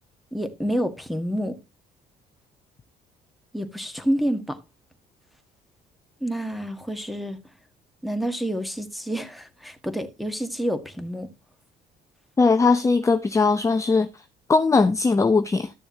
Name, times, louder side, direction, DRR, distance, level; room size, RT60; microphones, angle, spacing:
voice 1, 0.3-1.6 3.5-4.6 6.2-7.4 8.0-11.3, equal, ahead, 1.5 m, -28 dB
voice 2, 12.4-14.1 14.5-15.7, left 4 dB, 20° left, 0.7 m, -19 dB
13.0 x 6.9 x 2.8 m
cardioid pair, 110°, 17 cm